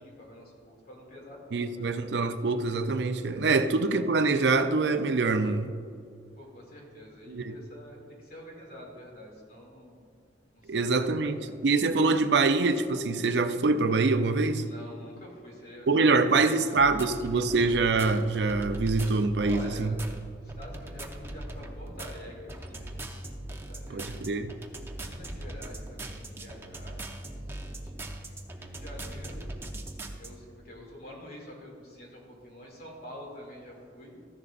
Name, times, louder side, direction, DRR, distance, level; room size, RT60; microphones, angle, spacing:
voice 1, 0.0-1.9 3.5-3.9 6.3-10.0 10.5-11.6 14.6-17.1 19.4-20.0 20.4-24.3 25.0-28.0 28.6-29.5 30.2-34.2, equal, 55° left, 2.5 m, -47 dB
voice 2, 1.5-5.7 7.3-7.6 10.7-11.4 11.6-14.6 15.9-20.0 23.9-24.5, right 3 dB, 70° right, 0.5 m, -25 dB
sound 1, 16.7-30.3, right 1 dB, 15° right, 0.7 m, -40 dB
14.0 x 10.5 x 2.5 m
head